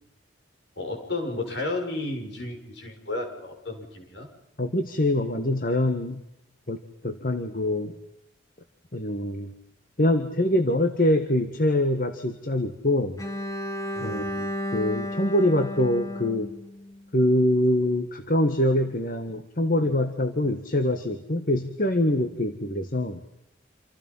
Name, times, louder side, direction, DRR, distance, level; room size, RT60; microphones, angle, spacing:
voice 1, 0.8-4.3 13.9-14.3, left 2 dB, 65° left, 4 dB, 6.7 m, -32 dB
voice 2, 4.6-6.2 6.7-7.9 8.9-9.5 10.0-13.2 14.0-16.5 17.1-23.2, left 1 dB, 45° left, 8 dB, 1.7 m, -24 dB
Bowed string instrument, 13.2-17.2, left 1 dB, 20° left, 1.8 m, -33 dB
28.5 x 27.5 x 5.6 m, 0.80 s
head